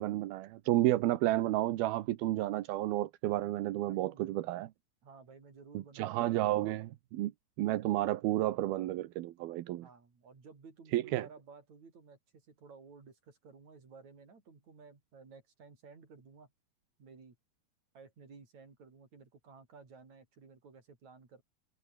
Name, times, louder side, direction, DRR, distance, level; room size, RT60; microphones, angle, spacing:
voice 1, 0.0-4.7 5.7-7.3 7.6-9.9 10.9-11.3, right 15 dB, 85° right, 3.0 m, -31 dB
voice 2, 3.6-4.5 5.0-6.4 9.7-16.5 17.0-17.4 17.9-21.4, right 5 dB, 50° right, 6.3 m, -55 dB
omnidirectional pair, 4.2 m